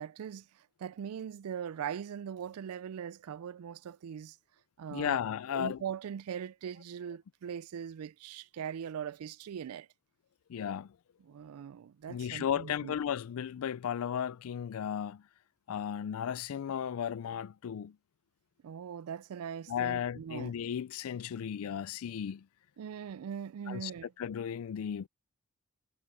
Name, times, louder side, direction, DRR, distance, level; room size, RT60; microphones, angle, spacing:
voice 1, 0.0-4.4 4.8-5.2 5.5-9.9 11.2-12.9 18.6-20.5 22.8-24.1, right 8 dB, 80° right, 0.4 m, -41 dB
voice 2, 4.9-5.8 10.5-11.0 12.1-15.2 15.7-18.0 19.7-22.5 23.7-23.9 24.2-25.1, left 8 dB, 70° left, 0.3 m, -35 dB
head